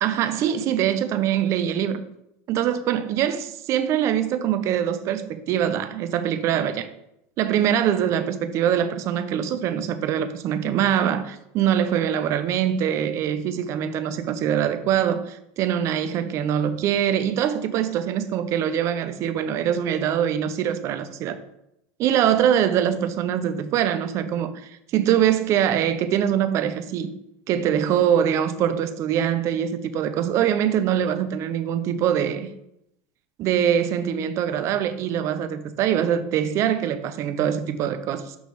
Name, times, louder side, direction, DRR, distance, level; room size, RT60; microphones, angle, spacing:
voice 1, 0.0-2.0 2.5-3.4 3.7-6.9 7.4-21.4 22.0-27.1 27.5-32.5 33.4-38.4, right 9 dB, 45° right, 0.6 m, -23 dB
6.2 x 3.1 x 5.3 m
supercardioid pair, 125°, 7 cm